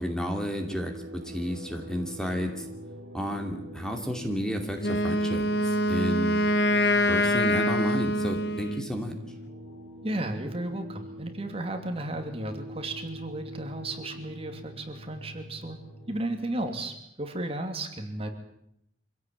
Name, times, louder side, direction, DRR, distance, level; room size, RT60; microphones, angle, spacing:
voice 1, 0.0-2.7 3.1-6.3 7.1-9.2, equal, 5° left, 4 dB, 2.7 m, -32 dB
sound 1, 0.5-16.8, right 1 dB, 70° right, 4.1 m, -45 dB
sound 2, 1.2-16.8, left 1 dB, 35° left, 4.4 m, -49 dB
Wind instrument woodwind instrument, 4.8-8.9, left 1 dB, 65° left, 1.3 m, -25 dB
voice 2, 10.0-15.8 16.1-18.3, right 1 dB, 35° right, 5 dB, 2.8 m, -34 dB
25.5 x 17.0 x 9.0 m, 0.77 s
head